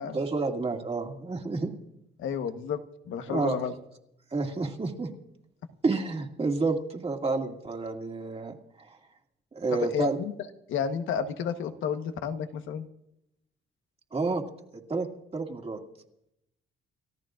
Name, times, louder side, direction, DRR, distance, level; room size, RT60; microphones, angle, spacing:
voice 1, 0.1-1.7 3.3-3.6 4.3-5.1 5.8-9.0 9.5-10.2 14.1-14.4 14.7-15.1 15.3-15.8, right 3 dB, 30° right, 2 dB, 2.3 m, -30 dB
voice 2, 2.2-2.8 3.1-3.7 9.7-10.3 10.7-12.9, left 7 dB, 80° left, 8 dB, 1.2 m, -31 dB
29.5 x 14.0 x 2.5 m, 0.81 s
cardioid pair, 90°, 20 cm